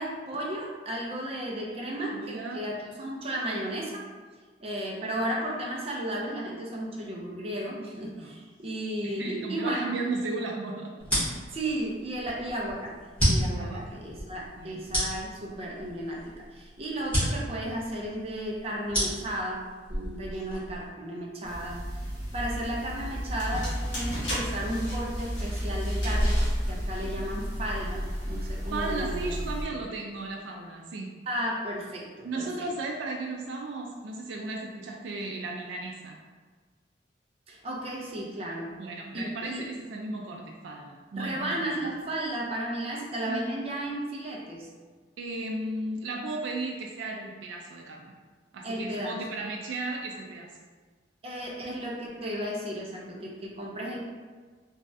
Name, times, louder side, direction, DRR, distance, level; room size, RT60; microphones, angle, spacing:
voice 1, 0.0-4.1 4.6-10.0 11.5-13.0 13.3-22.1 22.3-29.4 29.7-29.8 31.3-32.7 37.5-38.7 39.1-39.7 41.1-44.7 48.6-49.2 51.2-54.1, right 1 dB, 35° right, -2 dB, 0.5 m, -34 dB
voice 2, 2.1-2.6 8.1-8.4 9.0-11.0 13.5-14.0 14.6-14.8 20.0-20.3 27.0-27.3 28.7-31.1 32.2-36.2 38.8-41.7 43.3-43.5 45.2-48.1 48.5-50.5, right 2 dB, 90° right, 0 dB, 0.3 m, -35 dB
sound 1, 11.0-20.9, equal, 10° left, 1.3 m, -31 dB
sound 2, 21.4-29.6, equal, 80° left, 1.3 m, -31 dB
3.0 x 2.4 x 2.6 m, 1.4 s
head